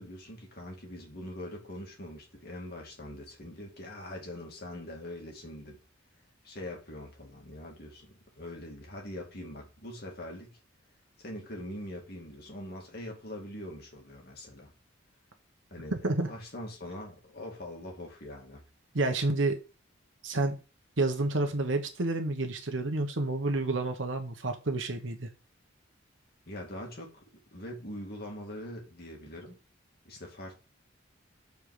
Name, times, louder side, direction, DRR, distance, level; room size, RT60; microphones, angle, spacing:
voice 1, 0.0-5.8 6.4-10.6 11.2-14.7 15.7-15.9 16.3-18.6 26.5-27.2 27.5-29.6 30.0-30.6, left 1 dB, 50° left, 2.5 m, -43 dB
voice 2, 15.9-16.3 18.9-19.6 20.2-20.6 21.0-25.3, right 2 dB, 75° right, 1.1 m, -29 dB
7.2 x 4.7 x 5.0 m
head